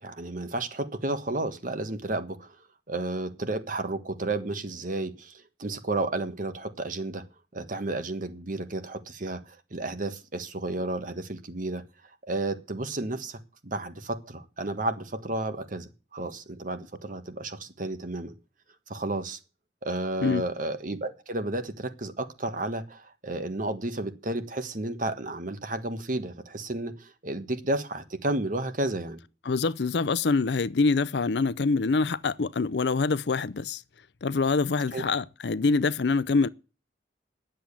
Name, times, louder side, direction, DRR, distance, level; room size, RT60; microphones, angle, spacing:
voice 1, 0.0-2.6 2.9-7.2 7.5-9.4 9.7-11.8 12.3-18.3 18.9-19.4 19.8-29.2 34.9-35.0, right 2 dB, 50° right, 1.5 m, -32 dB
voice 2, 29.4-33.8 34.2-36.5, left 4 dB, 70° left, 0.6 m, -25 dB
10.5 x 7.6 x 8.6 m
head